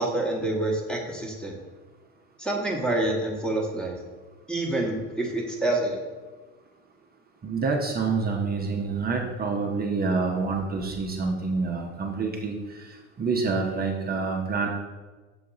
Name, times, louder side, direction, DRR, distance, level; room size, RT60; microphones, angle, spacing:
voice 1, 0.0-1.6 2.4-4.0 4.5-6.0, right 2 dB, ahead, -1 dB, 1.3 m, -27 dB
voice 2, 7.4-12.5 12.9-14.7, right 4 dB, 25° right, 0 dB, 0.8 m, -27 dB
7.0 x 3.5 x 3.9 m, 1.3 s
supercardioid pair, 100°, 38 cm